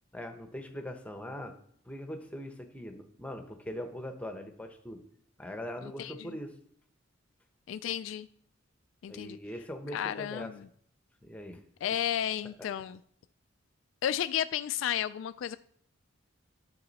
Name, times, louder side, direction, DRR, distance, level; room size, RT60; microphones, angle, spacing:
voice 1, 0.1-1.6 1.9-5.0 5.4-6.5 9.1-10.5 11.2-11.6, equal, 5° left, 0.8 m, -41 dB
voice 2, 6.0-6.4 7.7-8.3 9.0-9.4 9.9-10.7 11.8-13.0 14.0-15.6, left 10 dB, 80° left, 0.3 m, -33 dB
10.5 x 6.6 x 4.1 m
head